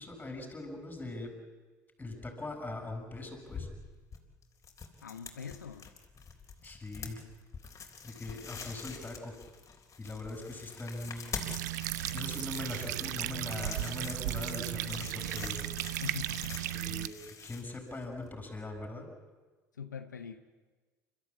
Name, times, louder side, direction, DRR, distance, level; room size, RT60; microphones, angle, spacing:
voice 1, 0.0-1.3 2.0-3.7 6.6-7.2 8.0-9.4 10.0-11.4 12.1-15.6 16.7-19.1, left 2 dB, 15° left, 4 dB, 7.6 m, -41 dB
sound 1, 3.2-18.3, left 5 dB, 35° left, 3.8 m, -46 dB
voice 2, 5.0-5.9 16.0-16.6 19.8-20.4, left 6 dB, 85° left, 8 dB, 1.1 m, -42 dB
sound 2, 11.4-17.1, right 15 dB, 75° right, 0.6 m, -35 dB
29.5 x 14.5 x 8.6 m, 1.3 s
figure-of-eight pair, 60°, 9 cm